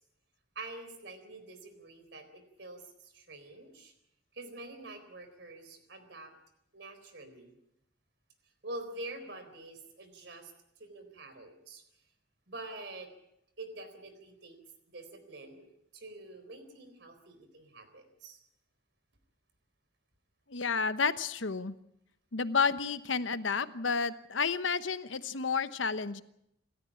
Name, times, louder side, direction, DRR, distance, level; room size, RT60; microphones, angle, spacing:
voice 1, 0.6-3.9 4.3-6.3 6.7-7.5 8.6-10.5 10.8-11.8 12.5-13.1 13.6-14.6 14.9-15.7 15.9-18.4, right 2 dB, 65° right, 9 dB, 4.2 m, -46 dB
voice 2, 20.5-21.8 22.3-26.2, left 5 dB, 85° left, 13 dB, 1.1 m, -31 dB
27.5 x 13.5 x 8.5 m, 0.78 s
head